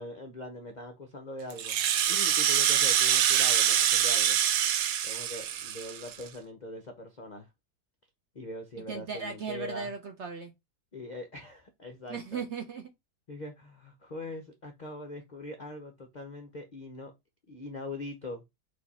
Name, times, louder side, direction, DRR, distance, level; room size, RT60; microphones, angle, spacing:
voice 1, 0.0-4.4 5.0-7.5 8.3-9.9 10.9-12.4 13.3-17.1 17.5-18.4, left 2 dB, 55° left, 0.5 m, -42 dB
Rattle (instrument), 1.5-6.3, right 9 dB, 75° right, 1.2 m, -25 dB
voice 2, 8.9-10.5 12.1-12.9, right 5 dB, 60° right, 0.8 m, -37 dB
4.7 x 2.6 x 4.1 m
omnidirectional pair, 1.7 m